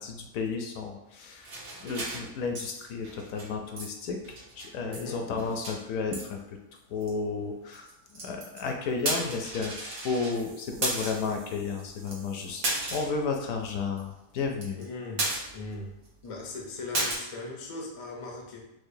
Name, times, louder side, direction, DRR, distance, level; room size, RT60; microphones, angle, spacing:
voice 1, 0.0-1.5 1.8-6.6 6.9-12.6 12.9-14.8, left 4 dB, 75° left, 3 dB, 0.9 m, -33 dB
sound 1, 1.4-2.7 3.0-3.5 3.8-3.9 4.2-5.0 5.3-5.8 6.1-6.2 7.0-7.1 7.7-8.6 9.0-10.4 10.8-11.2 11.8-11.9 12.1-12.2 12.6-13.2 13.6-13.7 14.0-14.1 14.4-14.8 15.2-15.8 16.0-16.1 16.9-17.2, right 2 dB, 85° right, 1.4 m, -33 dB
voice 2, 4.8-5.2 14.7-15.3 15.5-15.9 16.2-18.6, left 2 dB, 55° left, -1 dB, 0.3 m, -39 dB
sound 2, 10.3-13.1, right 3 dB, 65° right, 0.9 m, -52 dB
4.8 x 2.1 x 2.6 m, 0.87 s
omnidirectional pair, 1.5 m